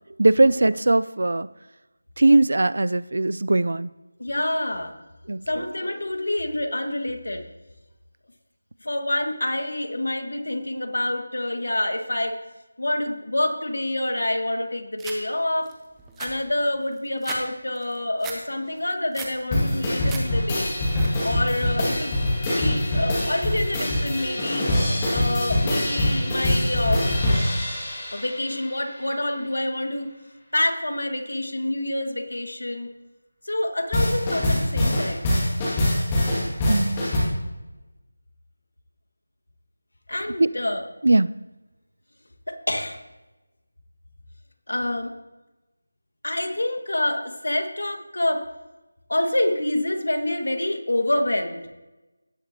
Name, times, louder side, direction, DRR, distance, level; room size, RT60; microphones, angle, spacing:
voice 1, 0.2-1.5 2.2-3.9 5.3-5.4 36.7-37.1 40.4-40.5 41.0-41.3, right 2 dB, 60° right, 18 dB, 0.4 m, -19 dB
voice 2, 4.2-4.9 5.5-7.4 8.8-12.4 12.8-15.7 16.2-20.7 21.2-22.2 22.6-24.7 25.1-27.1 28.1-30.1 30.5-32.9 33.4-35.3 40.1-40.8 42.5-43.0 44.7-45.1 46.2-48.4 49.1-51.7, left 1 dB, 90° left, 5 dB, 1.7 m, -27 dB
sound 1, 15.0-15.2 15.7-15.8 16.0-17.4 17.7-18.4 18.8-19.4 19.8-20.2 20.6-21.1, right 5 dB, 5° right, 0.6 m, -37 dB
sound 2, 19.5-28.7 33.9-37.2, left 1 dB, 15° left, 2.1 m, -24 dB
17.0 x 7.4 x 2.9 m, 1.1 s
figure-of-eight pair, 175°, 0 cm